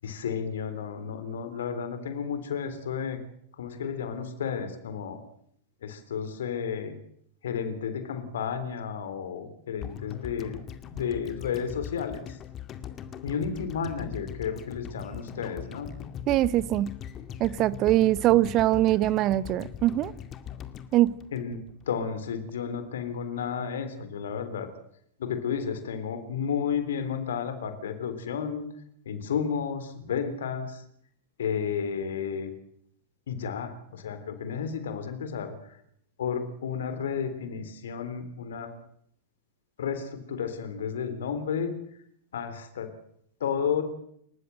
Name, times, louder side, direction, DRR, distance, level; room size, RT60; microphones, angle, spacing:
voice 1, 0.0-3.2 3.6-5.2 5.8-7.0 7.4-12.4 13.2-15.9 21.3-21.6 21.9-24.7 25.2-28.7 29.1-30.8 31.4-32.5 33.3-35.8 36.2-38.7 39.8-41.7 42.3-42.9 43.4-43.8, left 7 dB, 65° left, 3.5 m, -32 dB
sound 1, 9.8-22.0 22.3-22.4, left 9 dB, 30° left, 2.2 m, -41 dB
voice 2, 16.3-16.9 17.4-20.1 20.9-21.2, right 15 dB, 35° right, 0.9 m, -22 dB
28.5 x 15.0 x 7.8 m
figure-of-eight pair, 90°, 0 cm